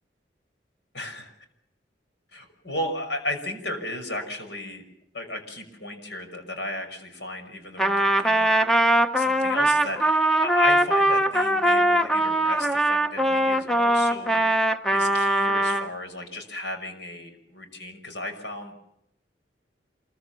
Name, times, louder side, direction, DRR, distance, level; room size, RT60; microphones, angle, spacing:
voice 1, 0.9-1.3 2.3-4.9 5.1-8.6 9.1-14.6 14.9-18.7, left 1 dB, 75° left, 6 dB, 5.8 m, -35 dB
Trumpet, 7.8-15.9, right 1 dB, 5° left, 1.0 m, -21 dB
27.5 x 22.0 x 7.1 m, 0.76 s
head